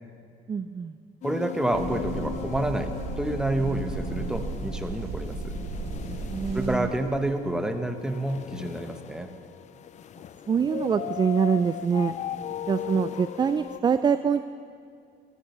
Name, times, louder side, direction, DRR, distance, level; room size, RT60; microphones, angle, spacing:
voice 1, 0.5-0.9 6.3-6.9 10.5-12.2 12.7-14.4, right 6 dB, 25° right, 11 dB, 0.4 m, -25 dB
sound 1, 1.2-13.8, left 11 dB, 45° left, 0.5 m, -38 dB
voice 2, 1.2-5.6 6.5-9.3, right 1 dB, 5° right, 6 dB, 1.1 m, -29 dB
sound 2, 1.7-6.8, right 3 dB, 75° right, 2.8 m, -34 dB
14.0 x 12.5 x 6.7 m, 2.4 s
cardioid pair, 110°, 17 cm